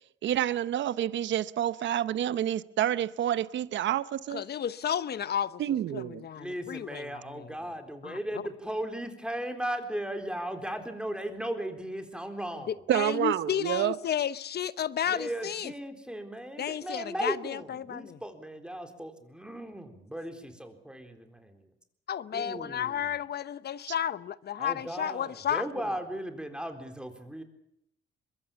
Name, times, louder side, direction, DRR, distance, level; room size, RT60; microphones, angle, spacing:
voice 1, 0.2-4.4 5.6-6.3 12.9-14.0, right 11 dB, 70° right, 0.9 m, -28 dB
voice 2, 4.3-7.6 8.0-8.4 12.7-15.7 16.6-18.2 22.1-25.9, left 9 dB, 55° left, 0.9 m, -33 dB
voice 3, 6.3-12.9 15.1-21.6 22.3-23.1 24.6-27.4, right 1 dB, 5° right, 3.8 m, -37 dB
23.0 x 22.0 x 7.1 m
cardioid pair, 90°, 20 cm